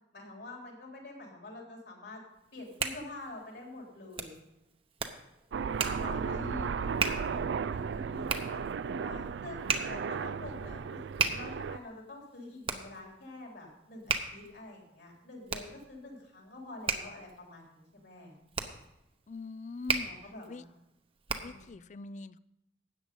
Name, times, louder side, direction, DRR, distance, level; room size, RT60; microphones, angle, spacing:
voice 1, 0.1-2.2 2.5-4.4 5.8-11.0 11.3-18.4 20.0-20.7 21.4-21.8, left 2 dB, 65° left, -1 dB, 3.5 m, -47 dB
Hands, 2.4-21.7, right 4 dB, 30° right, 0.9 m, -37 dB
Aircraft, 5.5-11.8, right 6 dB, 80° right, 0.4 m, -35 dB
voice 2, 5.9-6.8 19.3-20.1 20.5-20.6 21.4-22.4, left 3 dB, 40° left, 18 dB, 0.4 m, -42 dB
13.5 x 8.9 x 5.3 m, 0.88 s
head